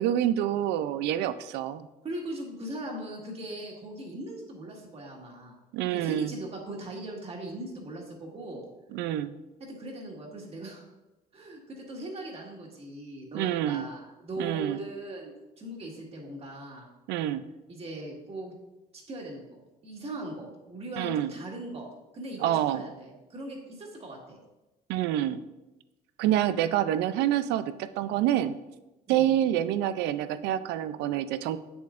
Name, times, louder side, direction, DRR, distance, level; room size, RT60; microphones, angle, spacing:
voice 1, 0.0-1.8 5.7-6.3 8.9-9.3 13.3-13.8 14.4-14.8 17.1-17.4 21.0-21.3 22.4-22.8 24.9-25.4 26.2-28.6 29.1-31.6, right 11 dB, 85° right, 13 dB, 0.4 m, -27 dB
voice 2, 2.0-5.6 5.9-8.7 9.7-10.8 11.3-16.9 17.7-18.5 18.9-21.9 22.1-24.4 29.1-29.3, right 1 dB, 35° right, -1 dB, 1.8 m, -39 dB
7.7 x 6.9 x 2.5 m, 1.0 s
cardioid pair, 110°, 17 cm